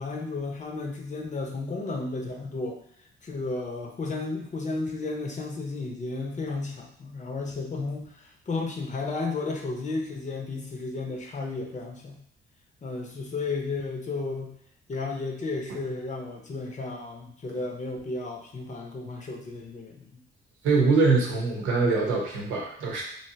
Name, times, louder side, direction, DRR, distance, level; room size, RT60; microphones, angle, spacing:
voice 1, 0.0-2.8 3.2-12.2 12.8-14.5 14.9-20.2, left 3 dB, 40° left, 1 dB, 0.8 m, -33 dB
voice 2, 20.6-23.0, right 4 dB, 90° right, -1 dB, 0.9 m, -23 dB
3.2 x 2.7 x 2.8 m, 0.67 s
cardioid pair, 90°, 20 cm